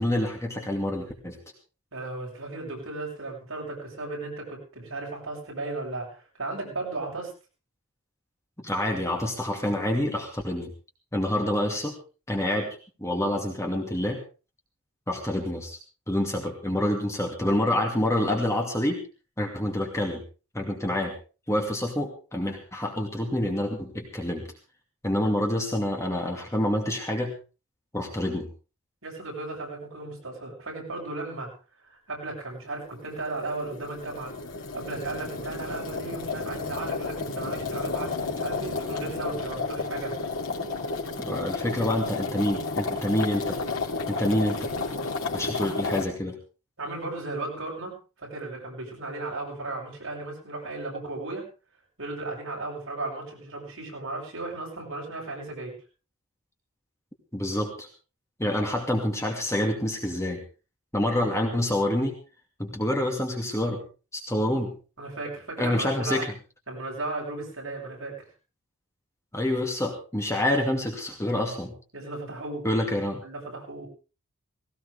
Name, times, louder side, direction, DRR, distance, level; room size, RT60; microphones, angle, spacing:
voice 1, 0.0-1.4 8.6-10.7 11.1-12.0 12.3-14.2 15.1-15.8 16.1-19.0 19.4-20.2 20.5-21.1 21.5-24.4 25.0-27.4 27.9-28.5 41.2-43.6 44.1-44.7 45.3-46.4 57.3-57.9 58.4-60.4 60.9-62.1 62.6-63.8 64.1-64.7 65.6-66.3 69.3-71.7 72.6-73.2, left 1 dB, 15° left, 1 dB, 2.5 m, -27 dB
voice 2, 1.9-7.3 29.0-31.5 31.8-40.1 46.8-51.5 52.0-55.8 65.0-66.2 66.7-68.3 71.9-72.6 73.0-73.9, right 2 dB, 65° right, -1 dB, 8.0 m, -35 dB
sound 1, 32.9-46.0, left 3 dB, 65° left, 3.3 m, -32 dB
18.0 x 17.5 x 3.5 m, 0.34 s
head